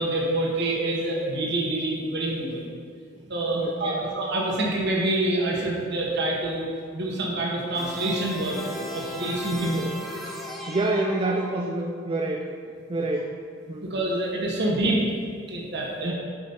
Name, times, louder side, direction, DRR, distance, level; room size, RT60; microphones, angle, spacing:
voice 1, 0.0-2.7 3.3-6.7 6.9-8.6 8.9-9.8 13.8-15.1 15.5-16.1, right 1 dB, 60° right, -3 dB, 1.3 m, -26 dB
voice 2, 3.5-4.1 9.5-10.0 10.3-10.4 10.7-12.5 12.9-13.3 13.7-13.9 16.0-16.1, right 2 dB, 30° right, 2 dB, 0.5 m, -28 dB
sound 1, 7.7-12.1, equal, ahead, 0.8 m, -36 dB
8.3 x 5.1 x 5.5 m, 2.2 s
head